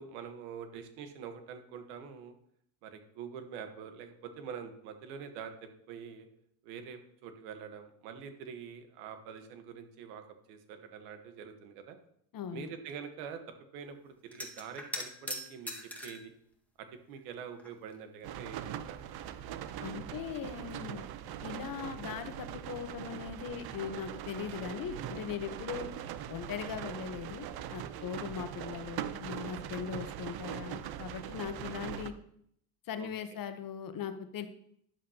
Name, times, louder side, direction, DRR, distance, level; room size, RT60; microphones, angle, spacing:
voice 1, 0.0-2.3 2.8-6.3 6.6-12.0 12.5-13.4 13.7-15.7 16.0-16.3 16.8-19.1 25.5-25.9 27.9-28.1 33.0-33.1, right 7 dB, 85° right, 7 dB, 1.4 m, -45 dB
voice 2, 12.3-12.7 19.8-21.0 21.4-25.8 26.3-32.1 32.9-34.5, left 7 dB, 45° left, 10 dB, 1.0 m, -40 dB
sound 1, 14.3-16.3 17.2-18.0 18.3-18.4 19.7-19.8 20.1-21.1 24.7-24.9 25.2-25.4, left 1 dB, 5° left, 1.7 m, -42 dB
sound 2, 18.2-32.1, right 10 dB, 55° right, 0.8 m, -41 dB
10.5 x 7.4 x 2.9 m, 0.69 s
supercardioid pair, 90°, 46 cm